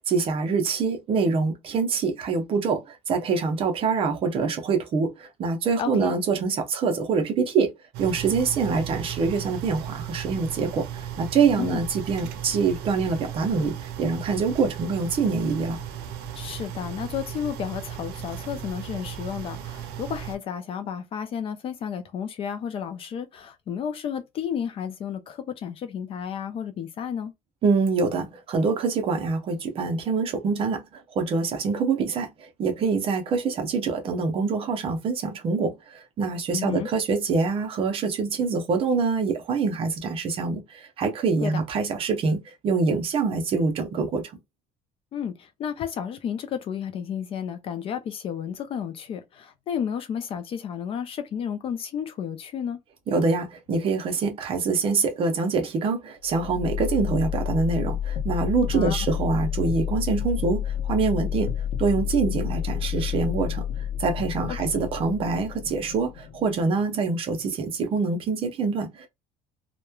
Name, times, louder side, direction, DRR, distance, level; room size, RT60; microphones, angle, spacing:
voice 1, 0.1-7.7 8.0-15.8 27.6-44.2 53.1-61.5 61.8-63.6 64.0-69.1, right 4 dB, 35° right, 0.6 m, -25 dB
voice 2, 5.8-6.1 11.6-11.8 16.4-27.3 36.5-36.9 41.4-41.6 45.1-52.8 58.7-59.1 64.5-64.6, left 8 dB, 35° left, 0.4 m, -32 dB
sound 1, 7.9-20.4, right 9 dB, 85° right, 0.6 m, -36 dB
sound 2, 56.3-68.2, left 9 dB, 65° left, 0.7 m, -30 dB
2.9 x 2.1 x 2.3 m
cardioid pair, 165°, 16 cm